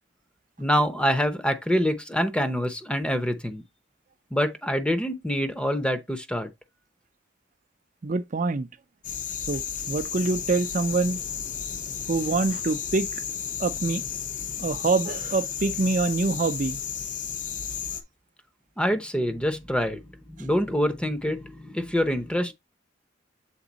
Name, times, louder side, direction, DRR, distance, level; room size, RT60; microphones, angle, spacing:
voice 1, 0.6-3.6 4.3-6.5 18.8-20.0 20.3-22.5, equal, 5° left, 0.7 m, -25 dB
voice 2, 8.0-8.7 9.5-11.2 12.1-13.1 13.6-14.0 14.6-16.8, right 3 dB, 45° right, 0.5 m, -25 dB
sound 1, 9.0-18.0, left 8 dB, 45° left, 0.7 m, -33 dB
7.3 x 3.8 x 3.9 m
head